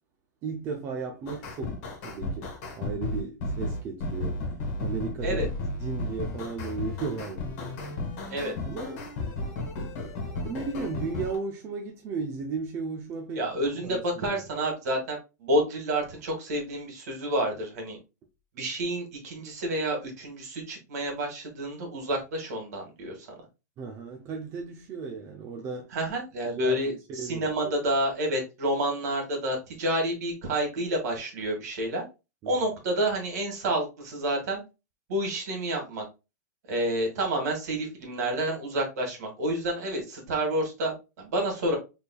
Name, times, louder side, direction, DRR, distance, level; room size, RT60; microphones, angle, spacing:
voice 1, 0.4-4.5 4.8-5.4 5.8-7.9 8.6-9.1 10.2-13.4 13.7-14.4 23.8-25.9 26.5-26.8 27.2-27.7 32.4-32.5, right 4 dB, 25° right, 0.5 m, -35 dB
sound 1, 1.3-11.4, left 2 dB, 45° left, 1.5 m, -33 dB
voice 2, 13.4-18.0 18.5-23.3 25.9-32.0 32.5-34.6 35.1-36.0 36.7-41.8, right 1 dB, 60° right, 1.9 m, -29 dB
4.2 x 3.4 x 2.2 m
hypercardioid pair, 150°, 10 cm